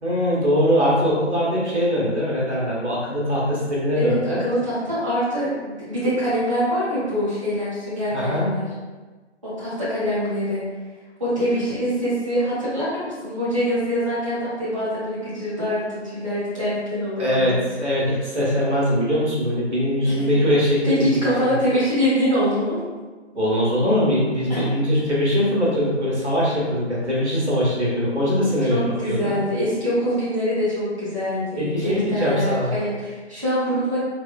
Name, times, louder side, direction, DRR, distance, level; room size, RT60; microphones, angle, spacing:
voice 1, 0.0-4.4 8.1-8.5 17.2-21.5 23.3-29.3 31.6-32.7, equal, 75° right, -6 dB, 1.3 m, -22 dB
voice 2, 3.9-8.7 9.4-10.6 11.2-17.5 20.0-20.3 20.8-22.8 24.5-24.6 28.7-34.0, equal, 25° right, -11 dB, 0.9 m, -24 dB
4.1 x 2.3 x 2.3 m, 1.3 s
figure-of-eight pair, 155°, 35 cm